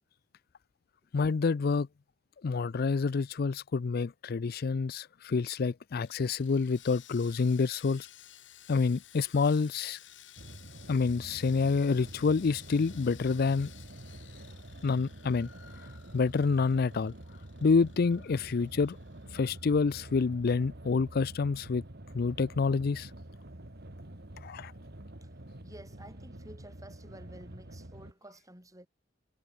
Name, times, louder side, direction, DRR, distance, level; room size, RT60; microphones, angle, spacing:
voice 1, 1.1-1.9 2.4-8.1 8.7-10.0 10.9-13.7 14.8-15.5 16.1-17.1 17.6-19.0 19.3-21.8 22.1-23.1 24.4-24.7, left 4 dB, 55° left, 0.4 m, -28 dB
Sawing, 6.0-20.3 20.5-20.7 21.2-21.3, left 11 dB, 80° left, 6.7 m, -55 dB
sound 1, 10.4-28.1, right 1 dB, 60° right, 2.4 m, -48 dB
voice 2, 25.6-28.9, right 1 dB, 20° right, 7.4 m, -52 dB
head